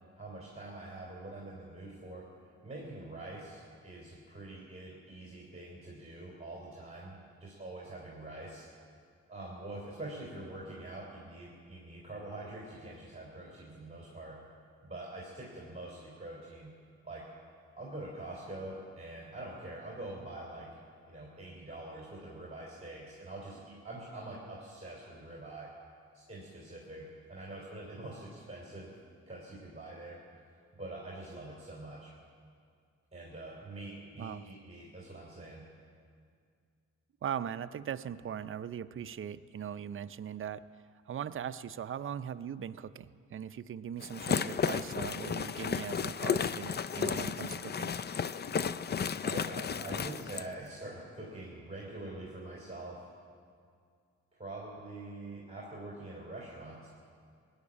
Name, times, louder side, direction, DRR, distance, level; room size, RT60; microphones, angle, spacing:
voice 1, 0.1-8.7 9.3-14.4 14.8-16.7 17.0-17.3 17.7-20.7 21.1-25.7 26.1-28.9 29.3-30.5 30.8-32.1 33.1-35.7 49.0-53.1 54.3-56.9, right 2 dB, 20° right, -4 dB, 3.4 m, -45 dB
voice 2, 37.2-40.6 41.1-47.9, right 8 dB, 45° right, 12 dB, 0.5 m, -40 dB
sound 1, 44.0-50.5, left 7 dB, 35° left, 0.4 m, -33 dB
19.0 x 7.3 x 9.9 m, 2.2 s
cardioid pair, 90°, 30 cm